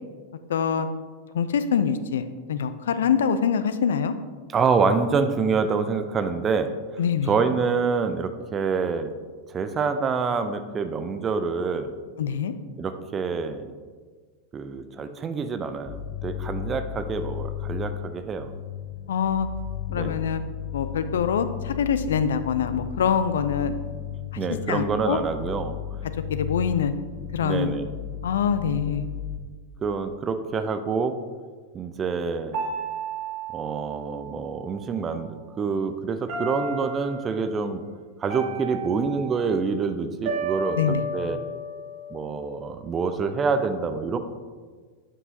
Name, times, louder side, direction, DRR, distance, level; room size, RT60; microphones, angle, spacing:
voice 1, 0.5-0.9 1.3-4.1 7.0-7.4 12.2-12.5 19.1-19.5 19.9-20.4 20.7-23.7 24.7-25.2 26.3-26.9 27.3-27.8 28.2-29.1 40.7-41.0, left 7 dB, 65° left, 11 dB, 0.4 m, -24 dB
voice 2, 4.5-6.7 7.3-9.1 9.5-11.9 12.8-13.7 14.5-18.5 19.9-20.2 24.4-25.7 27.4-27.9 29.8-31.2 31.7-32.5 33.5-37.8 38.2-40.8 41.1-41.4 42.1-44.2, right 5 dB, 25° right, 9 dB, 0.5 m, -26 dB
sound 1, 15.9-29.4, left 10 dB, 30° left, 0.7 m, -35 dB
sound 2, 32.5-34.9 36.3-37.3 38.3-39.6 40.2-42.6, right 2 dB, 50° right, 1.8 m, -33 dB
8.2 x 5.5 x 2.8 m, 1.5 s
figure-of-eight pair, 90°, 0 cm